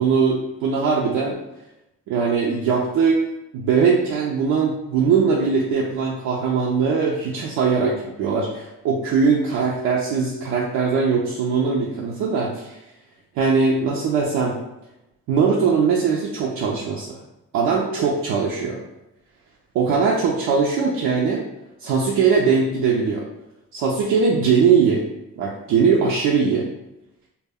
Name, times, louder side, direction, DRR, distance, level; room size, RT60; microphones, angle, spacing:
voice 1, 0.0-1.4 2.1-3.2 3.5-12.8 13.4-14.6 15.3-17.2 17.5-18.8 19.7-21.4 21.8-23.2 23.7-25.0 25.4-26.7, right 5 dB, 85° right, -3 dB, 0.5 m, -20 dB
2.1 x 2.0 x 3.4 m, 0.91 s
cardioid pair, 90°, 30 cm